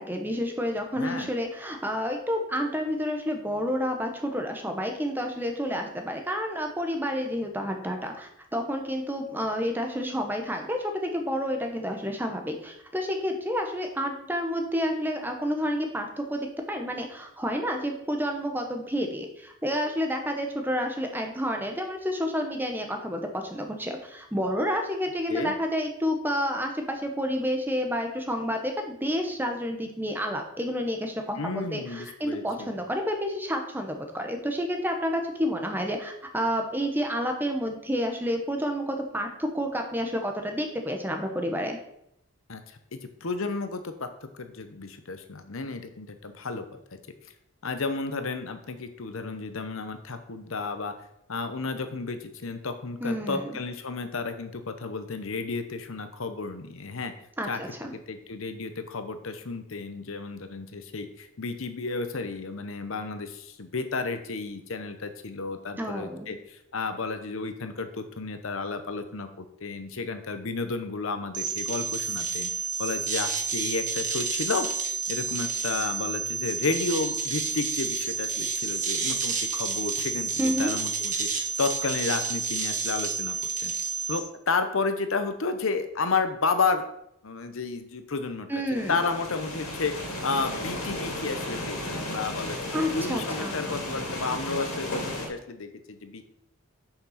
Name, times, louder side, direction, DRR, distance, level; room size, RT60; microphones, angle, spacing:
voice 1, 0.0-41.8 53.0-53.6 57.4-57.9 65.8-66.3 80.4-80.7 88.5-89.0 92.7-93.8, equal, 10° right, 3 dB, 1.0 m, -30 dB
voice 2, 1.0-1.3 25.3-25.5 31.4-32.7 42.5-42.6 42.9-44.1 44.3-46.8 47.6-50.9 51.3-57.1 57.5-57.6 58.1-72.5 72.8-74.7 75.1-83.7 84.1-86.8 87.2-88.5 88.9-89.9 90.2-96.2, left 4 dB, 70° left, 8 dB, 0.9 m, -32 dB
sound 1, 71.3-84.2, right 4 dB, 35° right, 1.2 m, -30 dB
sound 2, 88.7-95.3, left 1 dB, 90° left, 2.4 m, -34 dB
6.9 x 5.9 x 5.7 m, 0.76 s
head